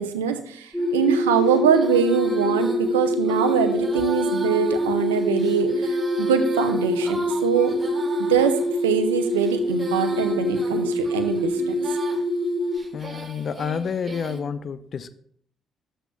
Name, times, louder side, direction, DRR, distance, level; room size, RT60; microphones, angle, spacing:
voice 1, 0.0-7.7 8.2-11.7, right 7 dB, 85° right, 0.6 m, -23 dB
sound 1, 0.7-12.8, left 1 dB, ahead, 3.0 m, -25 dB
Female singing, 0.8-14.4, right 4 dB, 35° right, 1.4 m, -39 dB
voice 2, 12.9-15.1, left 6 dB, 50° left, 0.5 m, -29 dB
11.0 x 7.9 x 2.3 m
hypercardioid pair, 45°, 0 cm